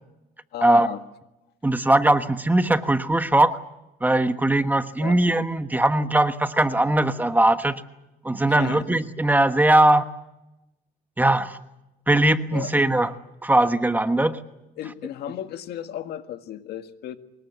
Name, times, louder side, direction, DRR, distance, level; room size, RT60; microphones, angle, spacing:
voice 1, 0.5-1.0 5.0-5.2 8.5-8.9 12.5-12.7 14.8-17.2, left 11 dB, 70° left, 8 dB, 1.8 m, -34 dB
voice 2, 1.6-3.6 4.0-7.8 8.2-10.1 11.2-11.6 12.1-13.1 13.4-14.4, right 1 dB, 10° right, 9 dB, 1.3 m, -20 dB
25.0 x 21.0 x 8.2 m, 0.94 s
cardioid pair, 110°, 17 cm